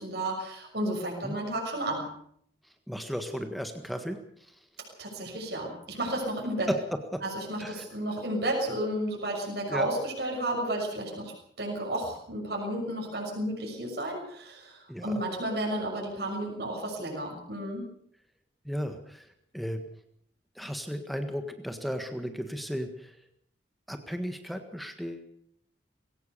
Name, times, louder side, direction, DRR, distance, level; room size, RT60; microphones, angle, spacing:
voice 1, 0.0-2.1 4.8-6.7 7.2-17.9, right 1 dB, 60° right, -1 dB, 6.4 m, -32 dB
voice 2, 2.9-4.2 4.5-4.6 6.7-6.8 7.1-7.2 7.6-7.8 9.7-9.9 14.9-15.2 18.6-19.3 19.5-19.8 20.5-23.2 23.9-25.3, equal, ahead, 6 dB, 1.6 m, -34 dB
21.5 x 17.5 x 6.9 m, 0.68 s
head